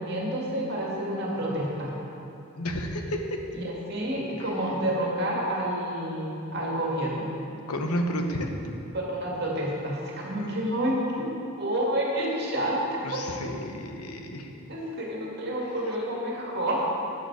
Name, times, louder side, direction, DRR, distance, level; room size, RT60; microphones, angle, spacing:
voice 1, 0.0-1.9 3.5-7.3 8.9-13.2 14.7-16.9, right 1 dB, 45° right, -3 dB, 2.3 m, -29 dB
voice 2, 2.6-3.2 4.4-4.5 7.7-8.5 10.4-10.5 13.0-14.5, equal, 85° left, 4 dB, 1.1 m, -31 dB
13.0 x 9.0 x 4.8 m, 2.7 s
head